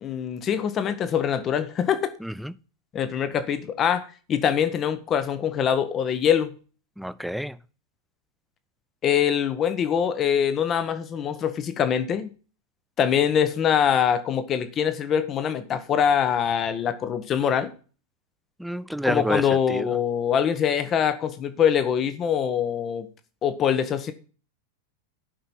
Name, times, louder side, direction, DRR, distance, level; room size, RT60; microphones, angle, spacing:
voice 1, 0.0-2.1 2.9-6.5 9.0-12.3 13.0-17.7 19.0-23.1 23.4-24.1, left 8 dB, 30° left, 1.1 m, -24 dB
voice 2, 2.2-2.6 7.0-7.6 18.6-20.0, equal, ahead, 0.4 m, -29 dB
11.5 x 5.6 x 4.4 m
figure-of-eight pair, 90°, 0 cm